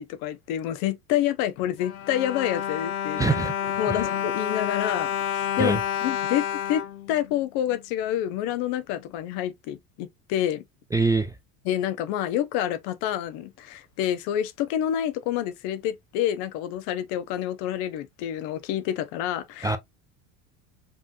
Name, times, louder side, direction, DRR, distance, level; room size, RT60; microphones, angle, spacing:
voice 1, 0.0-3.2 3.8-6.8 7.1-10.6 11.6-19.8, left 11 dB, 60° left, 1.1 m, -28 dB
Bowed string instrument, 1.6-7.8 8.5-8.6 8.9-9.0, left 9 dB, 85° left, 0.9 m, -29 dB
voice 2, 3.2-3.5 3.9-4.0 5.6-5.8 10.9-11.3 19.6-19.8, right 3 dB, 10° right, 0.3 m, -23 dB
5.2 x 3.5 x 2.7 m
hypercardioid pair, 90°, 42 cm